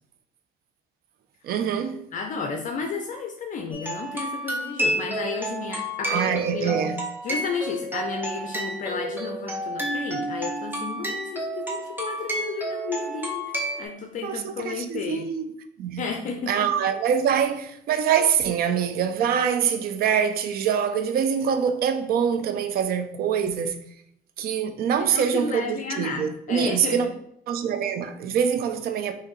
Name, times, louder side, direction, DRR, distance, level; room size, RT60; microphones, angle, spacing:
voice 1, 1.4-2.1 6.1-7.0 14.2-15.5 15.8-16.1 16.5-23.8 24.4-27.1 27.5-29.1, right 7 dB, 65° right, 0.6 m, -24 dB
voice 2, 2.1-6.8 7.2-13.5 13.8-15.3 16.0-16.6 24.5-24.6 25.1-27.0, left 5 dB, 50° left, 0.6 m, -32 dB
sound 1, 3.7-13.8, right 1 dB, 10° right, 1.0 m, -30 dB
5.6 x 2.7 x 3.1 m
cardioid pair, 110°, 17 cm